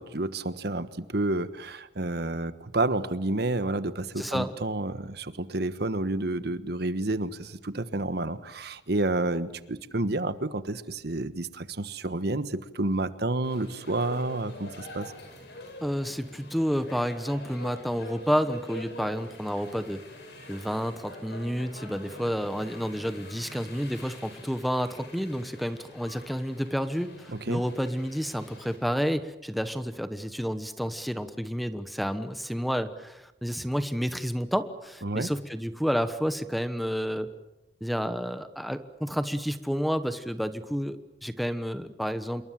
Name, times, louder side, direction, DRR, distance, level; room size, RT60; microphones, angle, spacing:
voice 1, 0.0-15.1 27.5-27.6 35.0-35.3, right 2 dB, 60° right, 13 dB, 1.3 m, -30 dB
voice 2, 4.2-4.5 15.8-20.0 20.5-37.3 37.8-42.4, equal, ahead, 10 dB, 1.1 m, -30 dB
sound 1, 13.4-28.8, left 1 dB, 65° left, 7.9 m, -45 dB
27.5 x 22.5 x 7.6 m, 0.92 s
head